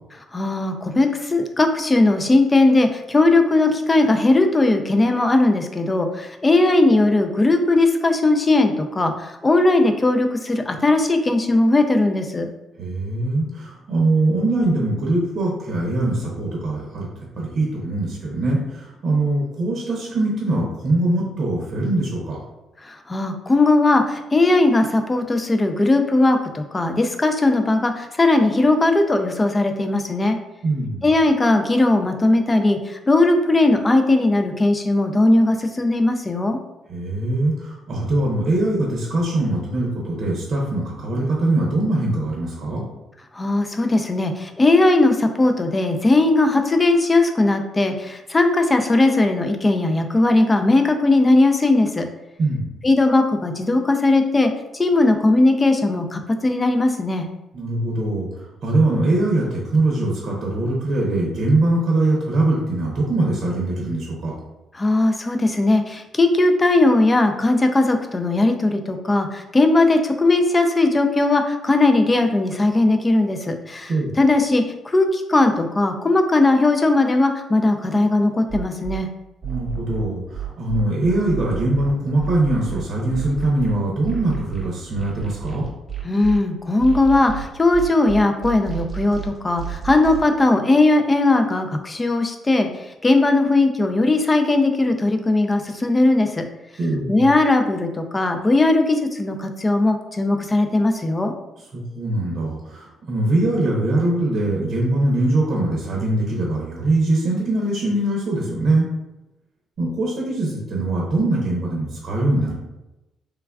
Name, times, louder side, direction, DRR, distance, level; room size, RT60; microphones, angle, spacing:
voice 1, 0.3-12.5 22.8-30.4 31.0-36.6 43.3-52.1 52.8-57.3 64.7-73.9 74.2-79.1 86.0-92.7 93.0-96.4 97.1-101.3, left 2 dB, 25° left, 5 dB, 0.3 m, -18 dB
voice 2, 12.8-22.4 30.6-31.0 36.9-42.8 52.4-52.7 57.5-64.3 73.9-74.1 79.4-85.6 96.8-97.3 101.7-108.9 109.8-112.6, right 2 dB, 60° right, -2 dB, 0.7 m, -22 dB
sound 1, 78.5-79.0 79.4-86.4 86.8-90.3, right 10 dB, 25° right, 0.9 m, -31 dB
3.2 x 2.3 x 2.2 m, 0.97 s
cardioid pair, 90°, 0 cm